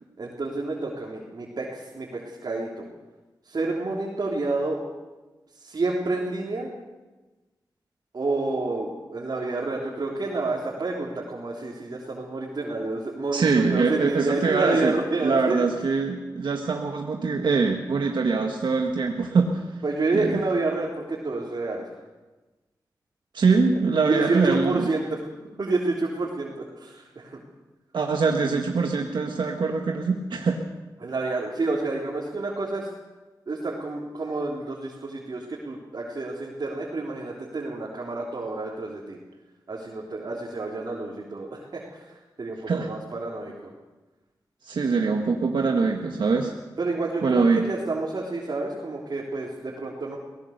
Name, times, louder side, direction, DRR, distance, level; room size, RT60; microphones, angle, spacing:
voice 1, 0.2-2.9 3.4-4.8 5.6-6.8 8.1-15.6 19.8-21.8 24.1-25.2 25.6-27.4 31.0-32.9 33.5-39.2 39.7-43.7 45.8-46.0 46.8-50.2, right 3 dB, 60° right, -4 dB, 3.7 m, -29 dB
voice 2, 13.3-14.9 15.2-19.6 20.1-20.4 23.3-24.9 27.9-30.6 42.7-42.9 44.6-46.5 47.2-47.6, right 4 dB, 90° right, 2 dB, 1.6 m, -23 dB
23.0 x 17.5 x 6.6 m, 1.2 s
wide cardioid pair, 80°, 8 cm